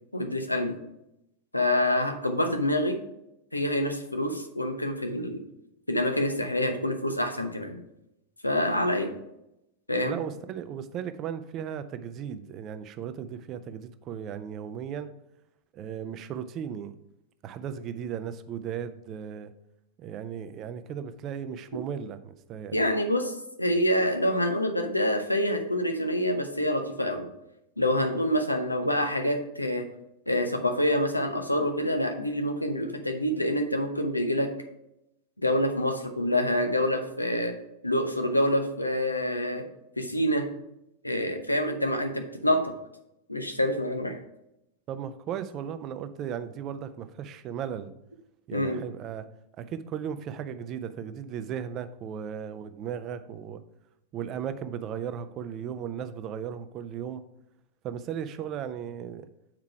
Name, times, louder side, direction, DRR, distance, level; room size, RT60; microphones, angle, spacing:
voice 1, 0.1-0.8 1.5-3.0 3.5-5.4 5.9-7.8 8.4-9.1 9.9-10.2 22.7-27.3 27.8-29.9 30.3-34.5 35.4-37.5 37.8-39.7 40.0-40.5 41.0-42.7 43.3-44.2 48.5-48.8, left 1 dB, 85° left, 6 dB, 0.8 m, -26 dB
voice 2, 10.0-15.1 15.7-16.9 17.4-19.5 20.0-22.8 44.9-47.9 48.5-49.3 49.6-53.6 54.1-57.2 57.8-59.3, right 8 dB, 35° right, 11 dB, 0.6 m, -36 dB
7.4 x 4.7 x 4.6 m, 0.85 s
figure-of-eight pair, 90°, 0 cm